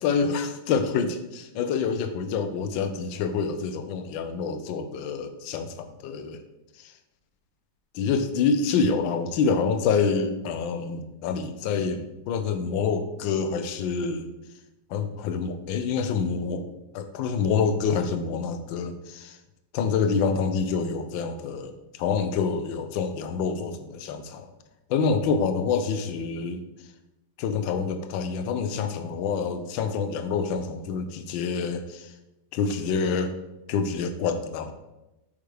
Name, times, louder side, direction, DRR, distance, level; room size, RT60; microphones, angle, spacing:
voice 1, 0.0-6.4 6.8-6.9 7.9-14.3 14.9-19.4 19.7-24.5 24.9-26.6 27.4-32.1 32.5-33.3 33.7-34.7, left 5 dB, 70° left, 9 dB, 1.3 m, -27 dB
8.5 x 5.7 x 3.3 m, 0.97 s
omnidirectional pair, 2.3 m